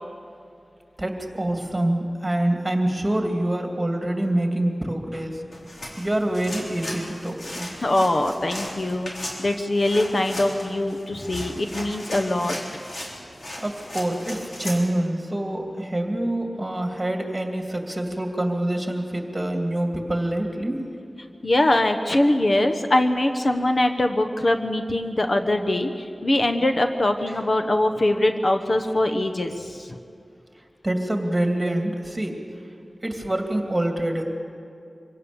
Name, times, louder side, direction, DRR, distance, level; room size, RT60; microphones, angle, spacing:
voice 1, 1.0-5.4 6.0-7.7 13.6-20.8 30.8-32.4 33.0-34.2, right 1 dB, 20° right, 3 dB, 2.7 m, -26 dB
sound 1, 5.5-14.8, left 1 dB, 70° left, 3.9 m, -36 dB
voice 2, 7.8-9.1 9.4-12.8 21.4-30.0, left 1 dB, 50° left, 6 dB, 1.1 m, -22 dB
24.5 x 17.0 x 7.1 m, 2.5 s
wide cardioid pair, 75°, 0 cm